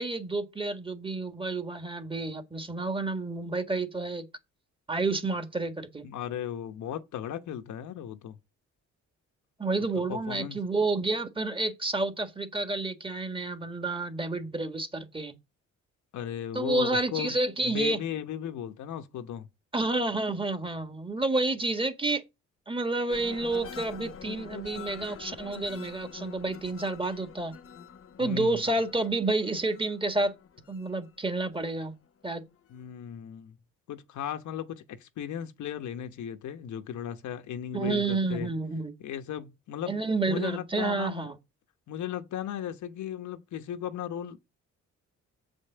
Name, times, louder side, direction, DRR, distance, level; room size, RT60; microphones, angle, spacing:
voice 1, 0.0-4.3 4.9-6.0 9.6-15.3 16.5-18.0 19.7-22.2 22.7-27.6 28.2-30.3 30.7-31.9 32.2-32.4 37.7-38.9 39.9-41.3, right 2 dB, 15° right, 1.7 m, -30 dB
voice 2, 6.0-8.4 9.8-10.6 16.1-17.3 17.6-19.5 28.2-28.6 32.7-33.6 33.9-38.5 39.0-41.3 41.9-44.4, left 9 dB, 75° left, 1.1 m, -36 dB
sound 1, 23.1-31.9 32.3-32.8, left 7 dB, 45° left, 1.0 m, -45 dB
7.9 x 5.3 x 6.7 m
cardioid pair, 90°, 30 cm